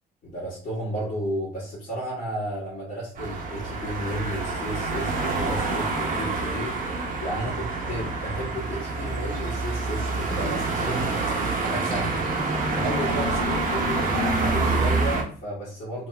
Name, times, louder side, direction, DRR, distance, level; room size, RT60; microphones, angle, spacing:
voice 1, 0.2-6.8 7.2-12.2 12.6-16.1, equal, 50° left, -9 dB, 1.5 m, -33 dB
sound 1, 3.2-15.2, right 3 dB, 55° right, 0.8 m, -27 dB
2.9 x 2.3 x 3.1 m, 0.44 s
cardioid pair, 110°, 17 cm